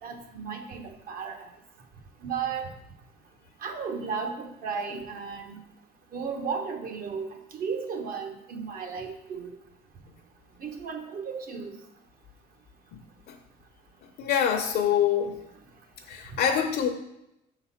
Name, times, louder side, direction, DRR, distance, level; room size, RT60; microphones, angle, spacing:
voice 1, 0.0-1.5 2.2-2.7 3.6-5.6 6.1-7.3 7.6-9.5 10.6-11.7, right 5 dB, 60° right, 4 dB, 1.1 m, -34 dB
voice 2, 14.2-15.4 16.1-16.9, left 8 dB, 70° left, 5 dB, 0.8 m, -25 dB
5.8 x 4.0 x 5.7 m, 0.86 s
cardioid pair, 110°, 17 cm